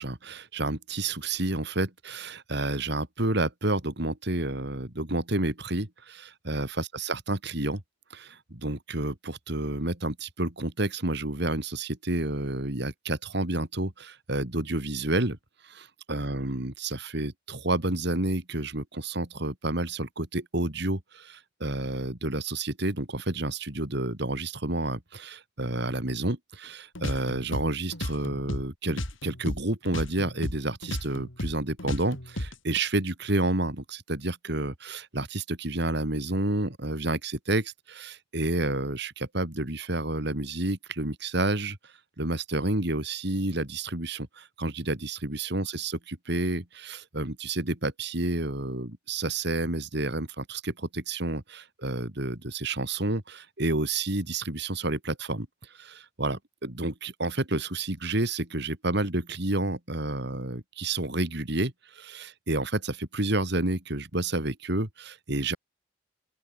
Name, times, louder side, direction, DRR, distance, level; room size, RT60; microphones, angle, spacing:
voice 1, 0.0-7.8 8.1-15.4 15.6-65.6, right 2 dB, 60° right, 3.0 m, -30 dB
sound 1, 26.9-29.6 29.9-32.8, left 1 dB, 85° left, 5.3 m, -34 dB
open air
head